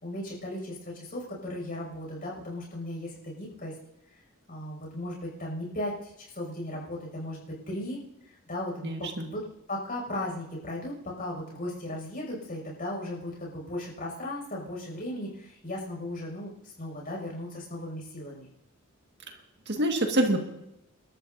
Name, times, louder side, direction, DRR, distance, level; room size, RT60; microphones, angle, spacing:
voice 1, 0.0-3.7 4.5-8.0 8.3-9.4 9.7-18.5, left 1 dB, 40° left, -2 dB, 6.2 m, -36 dB
voice 2, 8.8-9.3 19.7-20.4, right 1 dB, 50° right, 3 dB, 1.8 m, -26 dB
29.5 x 13.0 x 2.7 m, 0.86 s
head